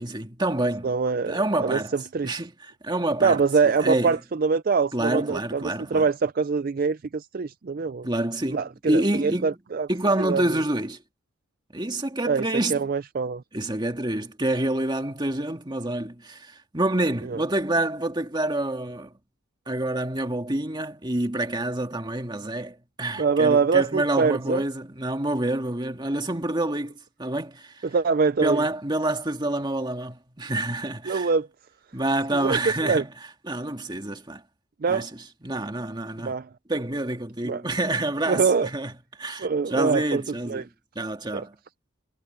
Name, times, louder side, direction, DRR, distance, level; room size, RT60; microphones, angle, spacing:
voice 1, 0.0-0.9 1.3-1.9 2.2-3.4 3.8-4.2 4.9-6.1 8.0-9.6 9.9-11.0 11.7-12.8 13.5-19.1 19.7-27.9 28.4-31.3 31.9-33.1 33.5-34.4 34.9-36.4 36.7-38.9 39.2-40.7 41.0-41.5, right 1 dB, 20° right, 2.0 m, -27 dB
voice 2, 0.8-2.4 3.2-8.1 8.5-9.9 10.2-10.4 12.3-12.4 12.7-13.4 17.3-17.4 23.2-24.6 27.8-28.6 31.1-31.5 32.4-33.0 34.8-35.1 36.2-36.5 37.4-37.6 38.3-38.7 39.4-40.6 41.3-41.5, right 5 dB, 45° right, 0.4 m, -24 dB
head